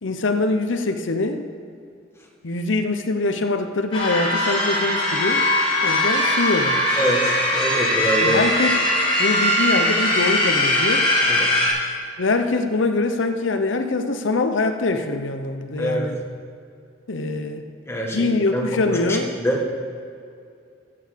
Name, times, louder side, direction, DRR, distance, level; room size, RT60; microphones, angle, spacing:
voice 1, 0.0-1.4 2.4-5.4 5.8-6.8 8.2-8.8 9.2-11.1 12.2-16.2 17.1-17.6 18.1-19.4, left 3 dB, 80° left, 7 dB, 0.8 m, -23 dB
sound 1, 3.9-11.7, left 1 dB, 30° left, 3.4 m, -20 dB
voice 2, 7.0-8.4 11.3-11.5 15.8-16.1 17.9-18.2 18.5-18.6 19.1-19.6, equal, 15° left, -1 dB, 1.6 m, -24 dB
15.0 x 8.6 x 5.1 m, 2.4 s
head